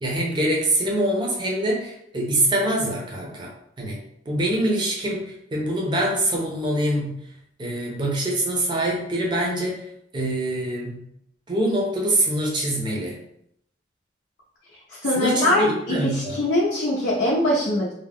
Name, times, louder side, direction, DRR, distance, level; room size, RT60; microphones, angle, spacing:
voice 1, 0.0-7.2 7.6-9.9 10.1-11.0 11.5-13.2 15.2-16.4, right 1 dB, 25° right, -2 dB, 0.5 m, -24 dB
voice 2, 15.0-17.9, left 1 dB, 80° left, -6 dB, 0.6 m, -22 dB
2.3 x 2.1 x 3.4 m, 0.73 s
head